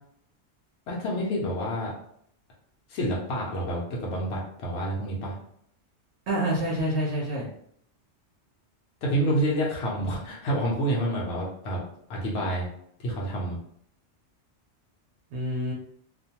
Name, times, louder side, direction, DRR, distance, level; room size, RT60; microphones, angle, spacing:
voice 1, 0.9-1.9 2.9-5.3 9.0-11.8 12.1-12.7 13.0-13.6, right 1 dB, 75° left, -3 dB, 0.9 m, -28 dB
voice 2, 6.3-7.4 15.3-15.7, right 1 dB, 75° right, -3 dB, 0.9 m, -27 dB
2.4 x 2.2 x 2.7 m, 0.68 s
omnidirectional pair, 1.2 m